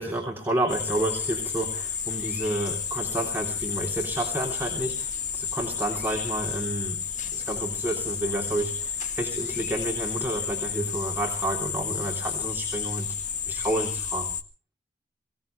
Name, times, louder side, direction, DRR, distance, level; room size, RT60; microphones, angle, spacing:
voice 1, 0.0-7.0 7.3-14.3, right 1 dB, 10° right, -1 dB, 3.3 m, -30 dB
sound 1, 0.7-14.4, left 7 dB, 45° left, 1.6 m, -31 dB
24.0 x 18.0 x 3.3 m, 0.37 s
head